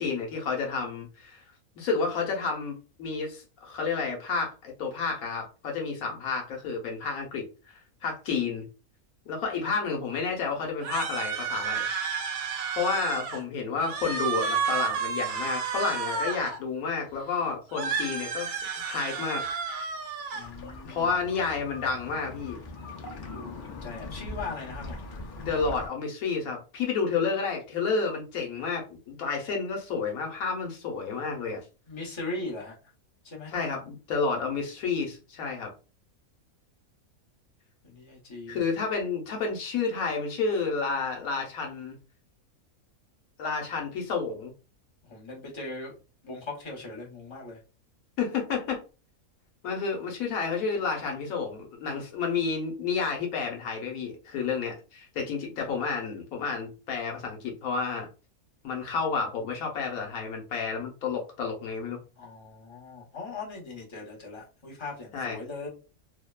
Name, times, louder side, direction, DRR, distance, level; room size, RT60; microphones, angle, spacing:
voice 1, 0.0-1.4 1.8-7.5 8.0-8.6 9.3-11.9 12.7-18.5 18.7-19.4 20.8-22.6 25.4-31.6 33.5-35.7 38.5-42.0 43.4-44.5 48.2-48.8 49.6-58.1 58.6-62.0 65.1-65.4, left 5 dB, 80° left, 1 dB, 1.1 m, -30 dB
sound 1, 10.8-13.4 13.8-16.6 17.7-20.4, right 6 dB, 80° right, 1.1 m, -31 dB
voice 2, 20.3-21.1 23.3-25.0 31.9-32.8 33.2-33.5 37.8-38.6 45.1-45.9 46.2-47.6 62.2-65.7, left 3 dB, 25° left, -2 dB, 0.8 m, -39 dB
sound 2, 20.4-25.9, left 2 dB, 60° left, 0.5 m, -41 dB
3.1 x 2.1 x 2.2 m, 0.33 s
omnidirectional pair, 1.5 m